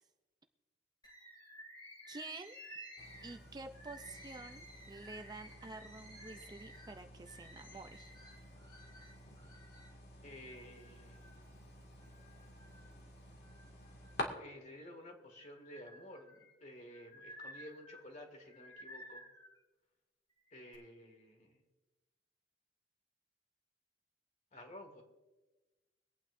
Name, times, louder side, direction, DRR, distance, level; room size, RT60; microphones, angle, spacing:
Bird, 1.0-9.9 10.5-11.5 12.0-13.0 13.4-14.8 15.3-19.6 20.3-20.8, equal, 25° left, 2.3 m, -55 dB
voice 1, 2.1-2.6 3.2-8.1, right 3 dB, 25° right, 7 dB, 0.5 m, -49 dB
sound 1, 3.0-14.2, left 1 dB, 60° left, 2.1 m, -50 dB
voice 2, 10.2-11.3 14.3-19.2 20.5-21.6 24.5-25.0, left 1 dB, 40° left, 4 dB, 2.0 m, -53 dB
24.5 x 8.9 x 2.6 m, 1.2 s
head